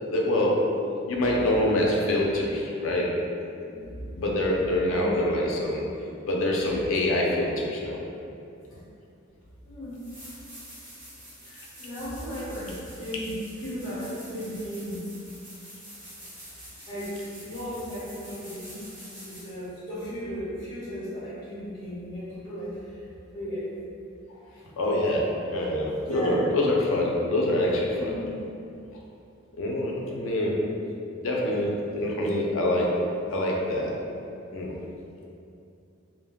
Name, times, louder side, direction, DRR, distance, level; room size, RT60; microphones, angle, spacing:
voice 1, 0.1-0.7 1.0-3.2 4.2-5.8 6.3-8.0 24.8-28.1 29.6-30.6 31.2-33.0 33.3-33.9 34.5-34.8, left 1 dB, 75° left, -2 dB, 0.5 m, -25 dB
voice 2, 3.6-4.2 4.9-5.2 8.7-8.8 9.6-9.9 11.4-15.1 16.8-18.8 19.2-23.1 23.3-23.7 24.5-24.7 26.0-26.4 27.9-28.3, equal, 20° left, -13 dB, 1.1 m, -36 dB
sound 1, 9.4-9.5 9.9-19.7 22.4-22.5, equal, 25° right, 1.1 m, -46 dB
2.2 x 2.1 x 3.4 m, 2.6 s
head